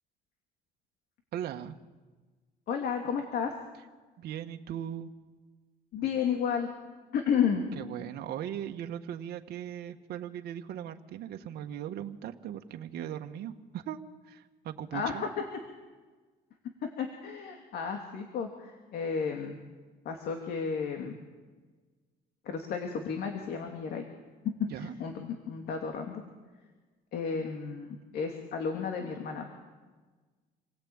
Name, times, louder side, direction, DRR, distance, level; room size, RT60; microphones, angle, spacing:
voice 1, 1.3-1.7 4.2-5.1 7.7-14.0 14.2-15.2 24.7-24.9, right 10 dB, 70° right, 5 dB, 1.6 m, -38 dB
voice 2, 2.7-3.5 5.9-6.7 7.1-7.6 14.9-15.1 17.0-19.6 20.0-21.2 22.4-24.0 24.8-26.2 27.1-29.4, left 6 dB, 70° left, 3 dB, 2.9 m, -32 dB
27.5 x 18.5 x 8.9 m, 1.4 s
cardioid pair, 110°, 17 cm